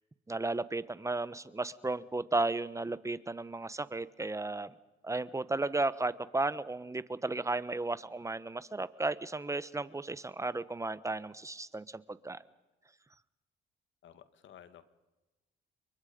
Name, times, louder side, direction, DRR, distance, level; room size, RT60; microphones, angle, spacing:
voice 1, 0.3-4.7 5.0-12.4, right 2 dB, 15° right, 16 dB, 1.1 m, -34 dB
voice 2, 14.0-14.8, left 9 dB, 70° left, 12 dB, 2.0 m, -54 dB
29.0 x 23.0 x 5.3 m, 1.1 s
cardioid pair, 90°, 20 cm